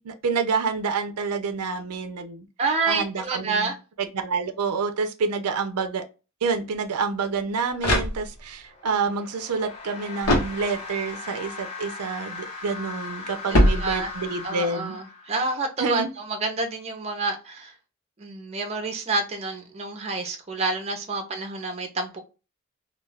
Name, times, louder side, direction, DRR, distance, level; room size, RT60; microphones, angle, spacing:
voice 1, 0.0-2.5 2.9-6.0 6.4-15.0 15.8-16.1, right 4 dB, 85° right, 0.5 m, -28 dB
voice 2, 2.6-3.8 13.5-14.1 14.4-17.7 18.2-22.2, right 3 dB, 30° right, 0.6 m, -28 dB
sound 1, 7.3-8.7 10.2-11.1 13.5-14.4, left 1 dB, 75° left, 1.1 m, -23 dB
sound 2, 8.6-15.6, left 4 dB, 30° left, 0.7 m, -39 dB
2.3 x 2.3 x 3.2 m
head